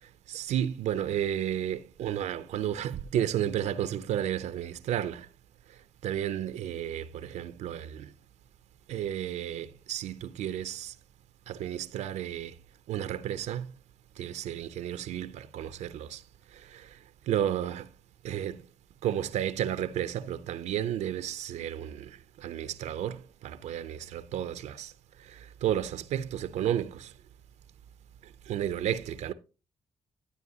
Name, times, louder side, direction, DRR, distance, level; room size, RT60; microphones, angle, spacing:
voice 1, 0.0-5.3 5.7-8.1 8.9-10.9 11.5-12.5 12.9-13.7 14.2-16.2 16.5-17.0 17.3-17.9 18.2-18.6 19.0-24.9 25.2-27.1 28.2-29.3, right 10 dB, 80° right, 0.5 m, -32 dB
11.0 x 9.2 x 2.7 m
supercardioid pair, 60°, 12 cm